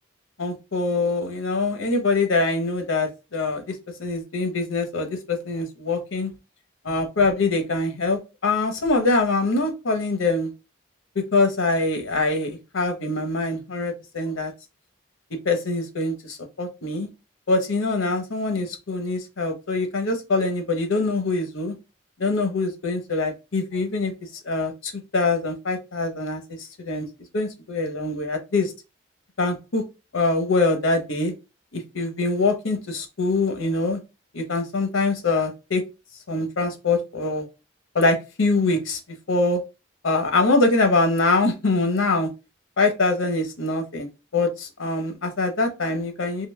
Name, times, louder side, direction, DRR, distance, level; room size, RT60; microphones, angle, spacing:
voice 1, 0.4-3.6 4.0-6.3 6.8-10.5 11.3-14.5 15.4-17.1 17.5-21.7 22.2-24.1 24.5-26.4 26.8-27.1 27.3-28.7 29.4-29.8 30.1-31.3 31.7-34.0 34.3-35.8 36.3-37.5 37.9-39.0 39.3-39.6 40.0-42.3 42.8-46.5, left 3 dB, 85° left, 0.9 m, -24 dB
3.8 x 2.9 x 2.2 m
head